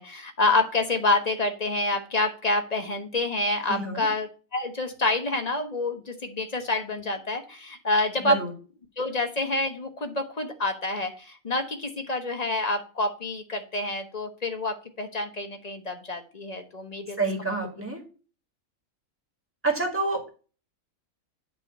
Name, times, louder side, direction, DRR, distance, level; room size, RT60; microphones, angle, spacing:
voice 1, 0.0-8.4 9.0-17.5, left 2 dB, 35° left, 5 dB, 0.9 m, -28 dB
voice 2, 3.7-4.1 8.2-8.5 17.2-18.0 19.6-20.3, right 3 dB, 10° right, 0 dB, 1.8 m, -27 dB
8.5 x 3.1 x 6.5 m, 0.36 s
omnidirectional pair, 1.4 m